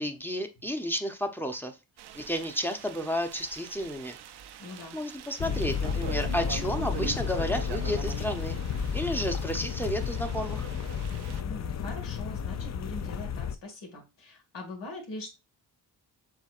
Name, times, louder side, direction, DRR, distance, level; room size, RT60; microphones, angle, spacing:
voice 1, 0.0-1.7 2.1-4.2 4.9-8.6 8.9-10.7, equal, 5° left, 5 dB, 0.7 m, -32 dB
sound 1, 2.0-11.4, right 10 dB, 70° right, 0.5 m, -44 dB
voice 2, 4.6-5.0 11.3-15.3, left 2 dB, 90° left, 1 dB, 1.8 m, -42 dB
sound 2, 5.4-13.5, left 7 dB, 40° left, 0.5 m, -32 dB
7.2 x 2.8 x 2.4 m, 0.25 s
cardioid pair, 70°, 41 cm